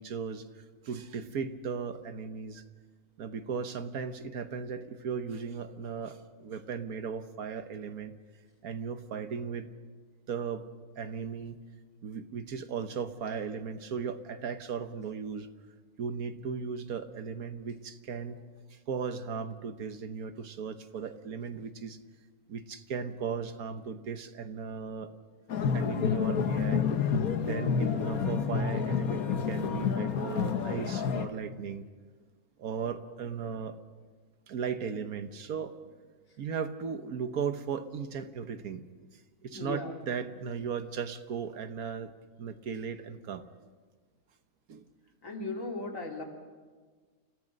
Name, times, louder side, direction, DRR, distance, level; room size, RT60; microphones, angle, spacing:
voice 1, 0.0-2.6 3.2-8.1 8.6-9.7 10.3-10.6 11.0-11.6 12.0-15.5 16.0-18.4 18.7-22.0 22.5-25.1 25.7-26.8 27.4-31.9 32.6-33.8 34.5-35.9 36.4-38.8 39.1-42.1 42.4-43.4 44.7-44.9, right 6 dB, 75° right, 9 dB, 1.5 m, -37 dB
sound 1, 25.5-31.3, left 6 dB, 75° left, 1.6 m, -29 dB
voice 2, 39.5-39.9 45.2-46.2, left 3 dB, 60° left, 1 dB, 3.1 m, -36 dB
29.5 x 15.0 x 6.5 m, 1.5 s
omnidirectional pair, 1.6 m